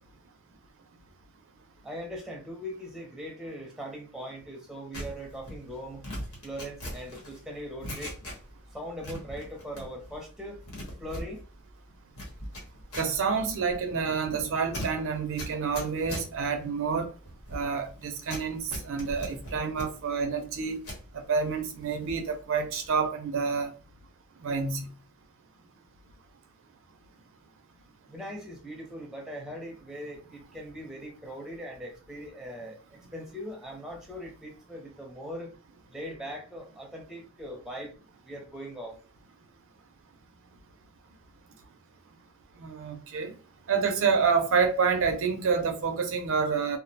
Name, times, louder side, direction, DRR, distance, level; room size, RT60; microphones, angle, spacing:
voice 1, 1.8-6.0 6.4-8.1 8.7-10.6 11.0-11.4 28.1-35.5 35.9-37.9 38.2-39.0, equal, ahead, 0.5 m, -40 dB
sound 1, 4.9-8.7 9.0-10.2 10.5-21.1 21.5-22.3 22.6-22.9, equal, 80° left, 1.0 m, -41 dB
voice 2, 13.0-17.1 17.5-20.8 21.1-23.7 24.4-24.9 42.6-43.3 43.7-46.8, right 5 dB, 60° right, 0.4 m, -28 dB
2.3 x 2.0 x 2.7 m
head